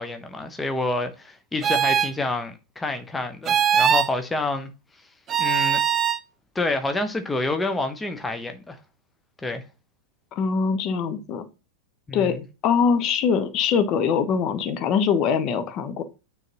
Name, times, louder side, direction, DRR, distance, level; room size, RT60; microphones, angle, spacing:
voice 1, 0.0-4.7 5.4-5.8 6.5-8.8 9.4-9.6 12.1-12.4, left 2 dB, 10° left, 0.9 m, -28 dB
sound 1, 1.6-2.1 3.5-4.1 5.3-6.2, right 8 dB, 25° right, 0.5 m, -21 dB
voice 2, 10.3-11.4 12.1-12.4 12.6-16.0, left 6 dB, 35° left, 0.9 m, -22 dB
9.1 x 4.0 x 2.9 m
figure-of-eight pair, 90°, 0 cm